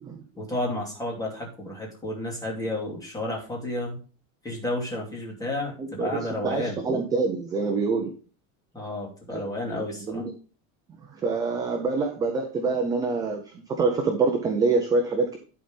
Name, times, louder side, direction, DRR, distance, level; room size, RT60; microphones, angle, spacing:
voice 1, 0.4-4.0 4.4-6.8 8.7-10.2, left 1 dB, 10° left, -3 dB, 2.6 m, -31 dB
voice 2, 5.8-8.1 9.3-9.4 9.7-10.3 11.1-13.4 13.7-15.4, right 4 dB, 10° right, 4 dB, 0.3 m, -26 dB
11.0 x 4.1 x 5.2 m, 0.38 s
supercardioid pair, 165°, 42 cm